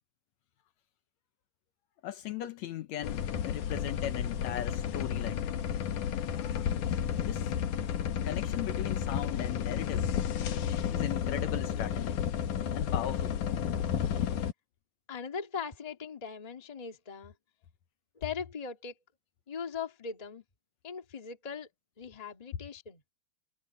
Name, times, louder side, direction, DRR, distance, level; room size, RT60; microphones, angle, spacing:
voice 1, 2.0-5.5 7.2-7.5 8.2-10.1 10.9-12.2 12.7-13.4, left 12 dB, 70° left, 2.1 m, -38 dB
sound 1, 3.0-14.5, left 8 dB, 90° left, 2.9 m, -32 dB
voice 2, 15.1-17.3 18.1-18.9 19.5-20.4 20.8-21.7 22.0-23.0, left 6 dB, 20° left, 1.3 m, -39 dB
omnidirectional pair, 3.5 m